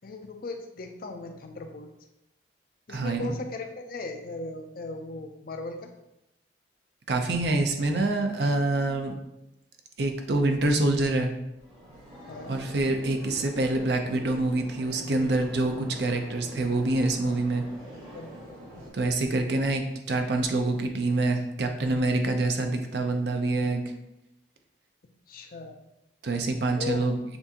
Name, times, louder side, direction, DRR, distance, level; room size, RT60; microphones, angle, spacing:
voice 1, 0.0-1.9 2.9-5.9 12.3-12.6 18.1-18.3 25.3-25.8 26.7-27.0, left 3 dB, 50° left, 5 dB, 0.5 m, -37 dB
voice 2, 2.9-3.4 7.1-9.1 10.0-11.3 12.5-17.6 18.9-23.8 26.2-27.2, right 2 dB, 60° right, 5 dB, 0.6 m, -26 dB
sound 1, 11.6-18.9, equal, 35° right, 1.6 m, -45 dB
6.9 x 2.6 x 2.8 m, 0.88 s
head